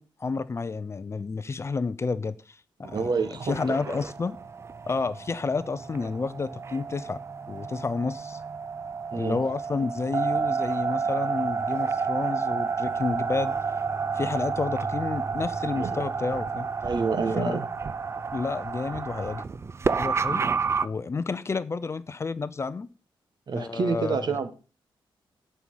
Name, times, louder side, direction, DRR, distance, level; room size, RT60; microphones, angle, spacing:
voice 1, 0.0-3.1 3.4-4.4 4.9-7.2 7.5-8.4 9.1-13.5 14.1-16.7 17.4-17.6 18.3-19.4 20.0-20.4 20.8-22.9 23.5-24.4, left 4 dB, 30° left, 0.6 m, -30 dB
voice 2, 2.8-4.0 9.1-9.4 15.8-16.0 16.8-17.7 23.5-24.5, right 4 dB, 50° right, 1.4 m, -28 dB
sound 1, 2.9-20.9, right 5 dB, 30° right, 0.5 m, -30 dB
11.0 x 5.6 x 8.5 m
wide cardioid pair, 140°, 9 cm